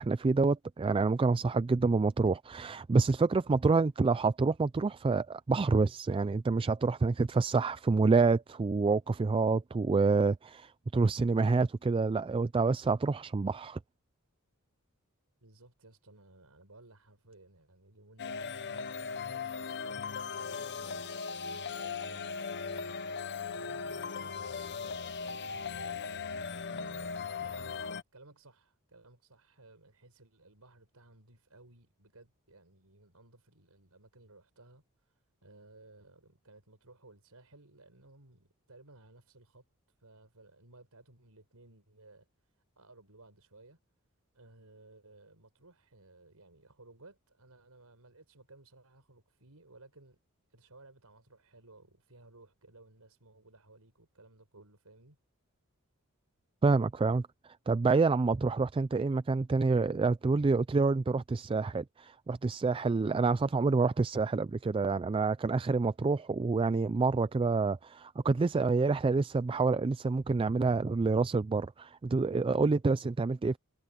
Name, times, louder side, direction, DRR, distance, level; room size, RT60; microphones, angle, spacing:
voice 1, 0.0-13.8 56.6-57.3 57.7-73.6, right 4 dB, 25° right, 0.3 m, -27 dB
voice 2, 15.4-26.0 26.6-27.1 27.4-43.8 44.3-50.2 50.5-55.2, right 2 dB, 85° right, 5.1 m, -58 dB
sound 1, 18.2-28.0, left 5 dB, 50° left, 0.9 m, -38 dB
head